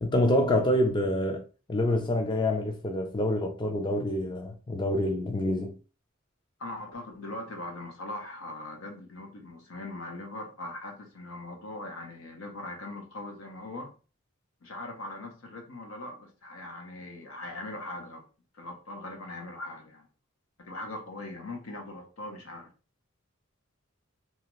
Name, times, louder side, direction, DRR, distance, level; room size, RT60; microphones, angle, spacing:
voice 1, 0.0-1.4 1.7-5.8, left 1 dB, 25° left, 0.4 m, -26 dB
voice 2, 6.6-13.9 14.6-18.2 18.5-20.1 20.6-22.7, left 2 dB, 85° left, 0.9 m, -40 dB
2.7 x 2.4 x 3.0 m
head